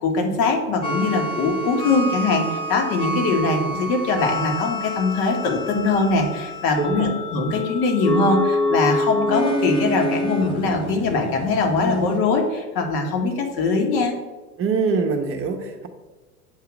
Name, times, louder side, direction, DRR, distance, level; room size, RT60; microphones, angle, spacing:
voice 1, 0.0-14.1, left 3 dB, 50° left, 3 dB, 1.6 m, -22 dB
sound 1, 0.8-12.2, equal, 10° left, 0.8 m, -27 dB
voice 2, 6.8-7.1 14.6-15.9, right 5 dB, 30° right, 5 dB, 0.9 m, -24 dB
8.1 x 2.8 x 6.1 m, 1.2 s
hypercardioid pair, 105°, 47 cm